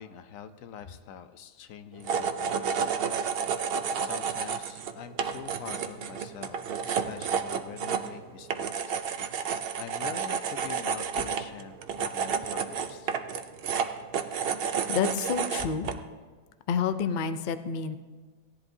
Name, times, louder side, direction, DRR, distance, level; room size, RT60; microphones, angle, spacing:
voice 1, 0.0-3.3 3.7-9.5 9.8-13.1, left 8 dB, 75° left, 11 dB, 1.0 m, -45 dB
sound 1, 2.0-16.0, right 6 dB, 60° right, 0.7 m, -31 dB
voice 2, 14.9-15.9 16.7-18.0, left 6 dB, 60° left, 11 dB, 0.5 m, -29 dB
16.5 x 10.5 x 2.7 m, 1.4 s
omnidirectional pair, 1.4 m